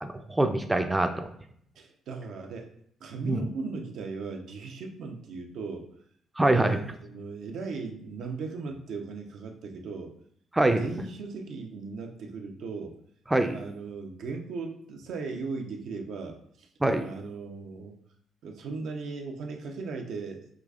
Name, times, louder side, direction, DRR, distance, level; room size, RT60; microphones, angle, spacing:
voice 1, 0.0-1.3 3.2-3.4 6.4-6.8 10.5-10.8 13.3-13.6 16.8-17.0, right 2 dB, 15° right, 6 dB, 0.4 m, -24 dB
voice 2, 1.8-2.7 3.0-5.9 6.5-10.1 10.7-13.0 13.5-16.7 17.0-18.0 18.4-20.4, right 4 dB, 75° right, 3 dB, 0.6 m, -37 dB
4.9 x 3.2 x 2.4 m, 0.66 s
cardioid pair, 90°, 0 cm